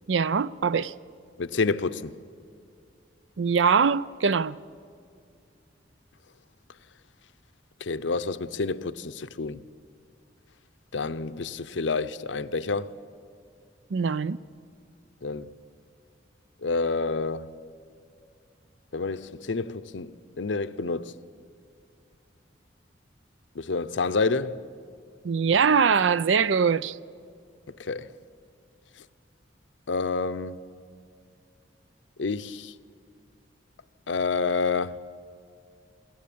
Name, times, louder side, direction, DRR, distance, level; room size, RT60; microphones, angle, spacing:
voice 1, 0.1-0.9 3.4-4.6 13.9-14.4 25.2-27.0, right 6 dB, 80° right, 0.5 m, -22 dB
voice 2, 1.4-2.1 7.8-9.6 10.9-12.9 15.2-15.5 16.6-17.5 18.9-21.2 23.5-24.6 27.8-28.1 29.9-30.6 32.2-32.7 34.1-35.0, left 4 dB, 75° left, 0.7 m, -28 dB
21.5 x 18.0 x 8.6 m
head